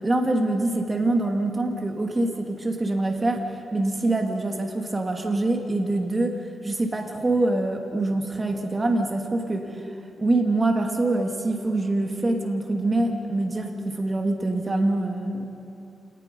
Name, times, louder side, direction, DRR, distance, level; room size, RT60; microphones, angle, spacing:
voice 1, 0.0-3.4 3.7-6.3 6.6-9.7 10.2-15.5, right 2 dB, 25° right, 3 dB, 2.5 m, -24 dB
27.5 x 19.5 x 5.5 m, 2.7 s
cardioid pair, 95°, 0 cm